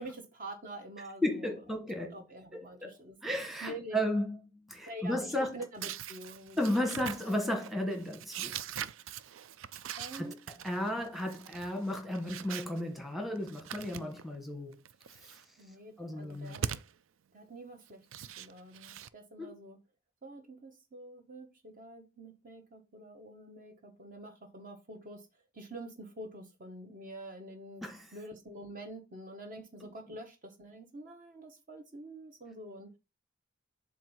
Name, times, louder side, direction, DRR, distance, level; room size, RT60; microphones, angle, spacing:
voice 1, 0.0-1.8 2.1-3.2 3.6-4.1 4.8-6.9 7.2-7.6 10.0-10.4 15.6-16.8 17.3-18.1 18.4-19.8 20.2-25.3 25.5-32.9, right 1 dB, 45° right, 1.2 m, -46 dB
voice 2, 1.2-2.1 2.5-2.9 3.2-4.3 4.7-5.5 6.6-8.6 10.1-10.3 10.6-14.8 16.0-16.6 19.4-19.5 27.8-28.1, left 1 dB, ahead, 1.3 m, -34 dB
sound 1, 5.8-12.8 13.3-14.4 14.7-15.4 16.2-16.9 17.9-19.1, right 9 dB, 90° right, 0.4 m, -42 dB
7.5 x 2.7 x 5.5 m
head